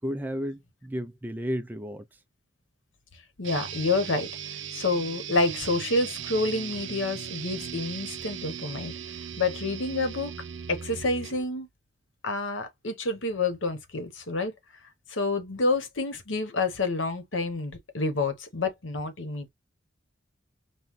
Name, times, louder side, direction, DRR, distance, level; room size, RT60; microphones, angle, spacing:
voice 1, 0.0-2.1, equal, 10° right, 0.4 m, -33 dB
voice 2, 3.4-4.3 4.7-8.9 9.4-10.3 10.7-11.7 12.2-14.5 15.1-19.5, left 3 dB, 70° left, 1.1 m, -28 dB
sound 1, 3.4-11.5, right 8 dB, 70° right, 0.6 m, -38 dB
5.5 x 2.2 x 3.1 m
head